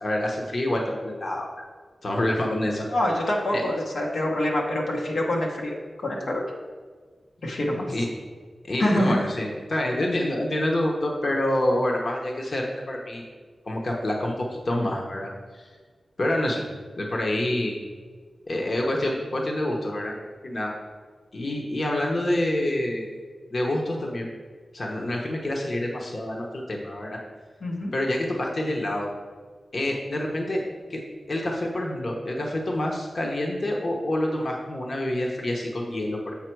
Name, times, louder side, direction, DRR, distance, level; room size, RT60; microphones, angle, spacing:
voice 1, 0.0-1.5 2.0-2.9 3.5-3.6 7.9-8.1 8.6-13.2 13.7-15.7 16.2-16.7 17.0-17.8 18.5-20.1 20.4-20.7 21.3-23.1 23.5-24.3 24.7-27.2 27.9-29.1 29.7-30.6 30.9-31.0 31.3-36.3, left 1 dB, 55° left, 0 dB, 0.9 m, -27 dB
voice 2, 2.9-6.4 7.4-7.9 8.8-9.3 27.6-27.9, left 1 dB, 90° left, -2 dB, 1.1 m, -25 dB
7.3 x 4.4 x 4.6 m, 1.5 s
wide cardioid pair, 85°, 0 cm